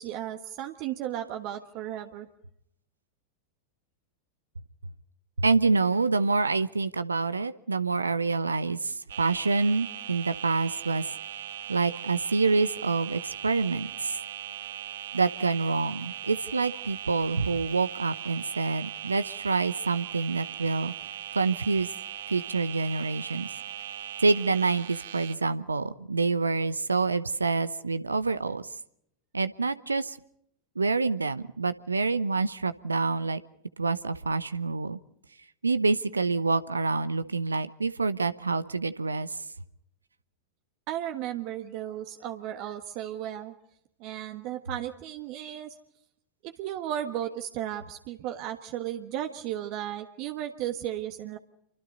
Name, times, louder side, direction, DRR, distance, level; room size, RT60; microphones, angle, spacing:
voice 1, 0.0-2.3 40.9-43.5 44.0-45.8 46.4-51.4, right 11 dB, 45° right, 7 dB, 1.4 m, -35 dB
voice 2, 5.4-11.1 11.7-14.2 15.1-20.9 21.3-21.9 22.3-23.5 24.2-28.7 29.3-30.2 30.8-33.4 33.8-35.0 35.6-39.4, right 4 dB, 80° right, 14 dB, 0.9 m, -27 dB
sound 1, 9.1-25.4, right 10 dB, 60° right, 1.7 m, -39 dB
28.5 x 24.5 x 4.1 m, 0.74 s
figure-of-eight pair, 90°, 0 cm